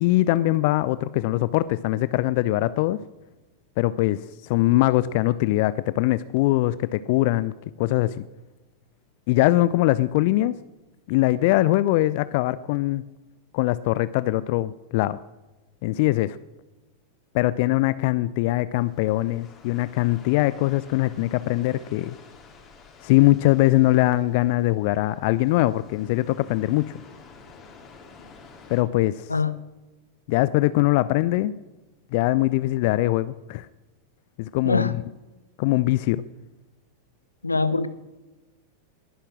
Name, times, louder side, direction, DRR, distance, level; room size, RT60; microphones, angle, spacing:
voice 1, 0.0-3.0 3.8-7.5 7.8-8.2 9.3-10.6 11.1-13.0 13.5-15.2 15.8-16.4 17.3-22.2 23.0-26.9 28.7-29.3 30.3-31.5 32.1-33.7 34.4-34.9 35.6-36.2, left 17 dB, 50° left, 17 dB, 0.5 m, -22 dB
sound 1, 18.8-28.8, left 4 dB, 30° left, 3.8 m, -50 dB
voice 2, 34.6-35.0 37.4-37.9, left 3 dB, 80° left, 15 dB, 0.9 m, -23 dB
20.5 x 11.5 x 6.2 m, 1.1 s
figure-of-eight pair, 90°, 0 cm